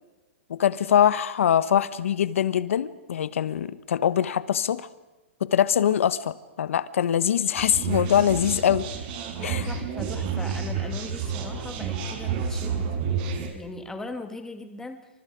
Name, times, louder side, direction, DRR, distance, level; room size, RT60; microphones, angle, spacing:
voice 1, 0.5-4.9 5.4-8.9 9.4-9.7, left 9 dB, 75° left, 15 dB, 1.3 m, -23 dB
sound 1, 7.5-13.5, right 6 dB, 45° right, 5.4 m, -30 dB
voice 2, 9.4-13.2 13.5-15.1, left 2 dB, 5° left, 6 dB, 2.4 m, -39 dB
28.5 x 25.5 x 5.1 m, 1.1 s
hypercardioid pair, 145°, 7 cm